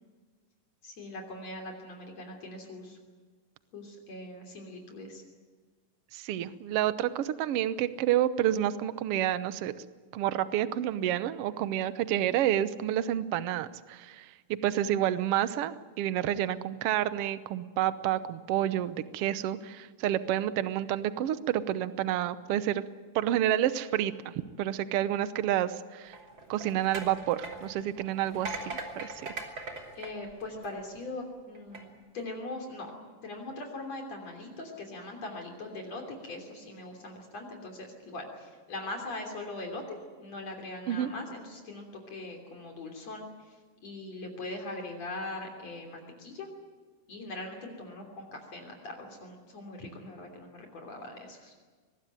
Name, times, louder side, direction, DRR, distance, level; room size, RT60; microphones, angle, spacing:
voice 1, 0.8-3.0 3.7-5.2 30.0-31.9 32.1-43.6 43.8-46.5 47.1-51.5, left 2 dB, 50° left, 2 dB, 4.2 m, -41 dB
voice 2, 6.1-9.7 10.1-14.3 14.6-22.8 23.1-24.3 24.6-26.2 26.5-29.1 40.9-41.1, right 12 dB, 80° right, 13 dB, 1.3 m, -29 dB
sound 1, 26.1-31.0 31.6-31.8, right 2 dB, 35° right, 3.3 m, -41 dB
24.0 x 20.0 x 9.2 m, 1.4 s
omnidirectional pair, 3.9 m